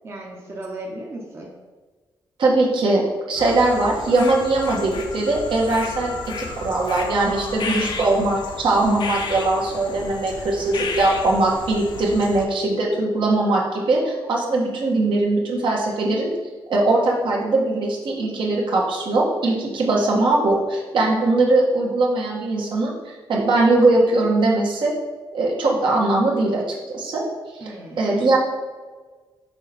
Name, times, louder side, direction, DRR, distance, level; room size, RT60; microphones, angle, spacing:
voice 1, 0.0-1.5 7.8-8.2 27.6-28.2, right 1 dB, 30° right, -2 dB, 0.8 m, -36 dB
voice 2, 2.4-16.3 16.7-24.9 25.3-27.2 28.0-28.4, right 2 dB, 70° right, -3 dB, 1.3 m, -20 dB
sound 1, 3.4-12.5, left 4 dB, 60° left, 0.7 m, -33 dB
5.9 x 4.4 x 4.1 m, 1.4 s
wide cardioid pair, 160°, 9 cm